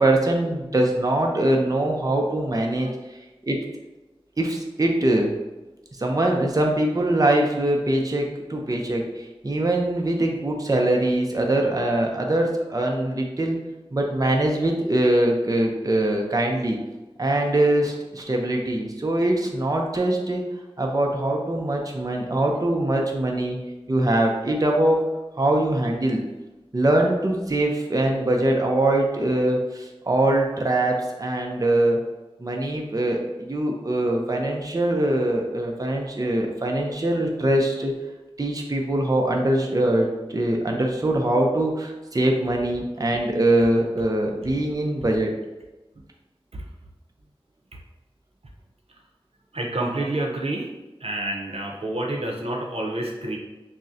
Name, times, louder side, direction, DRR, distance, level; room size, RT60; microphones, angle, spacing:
voice 1, 0.0-2.9 3.4-3.6 4.4-5.3 6.0-13.6 13.9-16.8 17.2-20.4 20.8-23.6 23.9-25.0 25.4-26.2 26.7-32.0 32.4-37.9 38.4-45.3, right 1 dB, 40° right, 1 dB, 0.5 m, -22 dB
voice 2, 49.5-50.7 51.0-53.4, right 1 dB, 85° right, -1 dB, 0.7 m, -28 dB
6.0 x 2.1 x 2.7 m, 1.1 s
wide cardioid pair, 45°, 10 cm